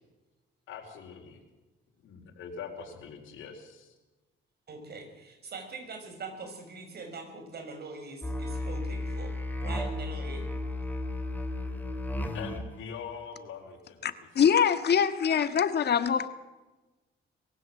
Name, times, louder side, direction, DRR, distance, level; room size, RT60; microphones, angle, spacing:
voice 1, 0.7-1.4 2.0-3.9 12.3-14.0 14.5-14.6, left 6 dB, 80° left, 4.6 m, -43 dB
voice 2, 4.7-9.3 9.6-10.5, right 3 dB, 55° right, 6.7 m, -43 dB
Musical instrument, 8.2-12.7, left 1 dB, 10° left, 3.4 m, -33 dB
voice 3, 14.0-16.3, left 7 dB, 55° left, 1.7 m, -24 dB
22.5 x 16.0 x 7.9 m
cardioid pair, 90°, 20 cm